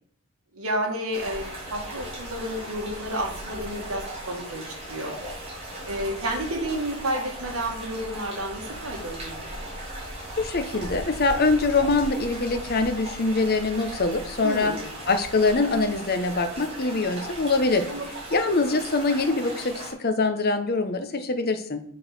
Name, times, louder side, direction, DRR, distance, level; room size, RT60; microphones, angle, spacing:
voice 1, 0.5-5.1 5.9-9.7 14.4-14.9 17.9-18.0, right 1 dB, 75° right, 1 dB, 2.0 m, -31 dB
sound 1, 1.1-19.9, right 1 dB, 25° right, 3.0 m, -37 dB
voice 2, 10.4-14.8 15.1-17.9 18.3-21.8, left 3 dB, 45° left, 8 dB, 0.9 m, -24 dB
7.0 x 4.8 x 5.9 m, 0.63 s
head